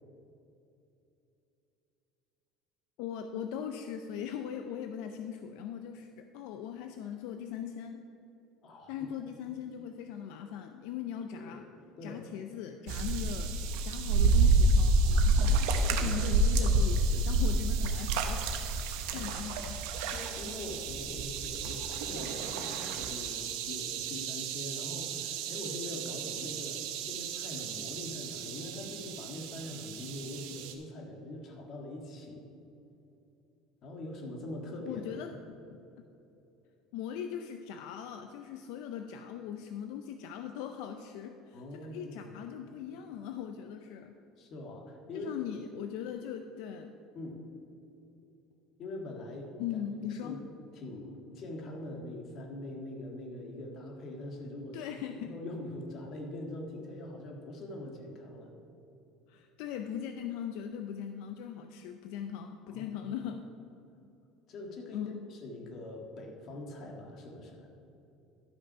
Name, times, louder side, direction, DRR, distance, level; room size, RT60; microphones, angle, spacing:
voice 1, 3.0-8.0 8.9-11.7 12.0-13.5 13.8-19.8 34.8-35.6 36.9-44.1 45.1-46.9 49.6-50.4 54.7-55.4 59.3-63.5 64.9-65.3, left 9 dB, 70° left, 7 dB, 0.5 m, -40 dB
voice 2, 8.6-9.1 9.5-9.6 11.3-11.6 12.0-12.2 16.0-16.2 18.9-19.2 20.1-32.4 33.8-35.0 41.5-42.2 44.4-45.4 47.1-47.4 48.8-49.8 50.2-50.4 50.7-54.9 55.2-58.5 62.7-63.1 64.5-67.7, left 1 dB, 40° left, 2 dB, 1.7 m, -43 dB
sound 1, 12.9-30.7, right 2 dB, 75° right, 1.0 m, -30 dB
12.0 x 6.0 x 5.6 m, 2.9 s
cardioid pair, 145°, 0 cm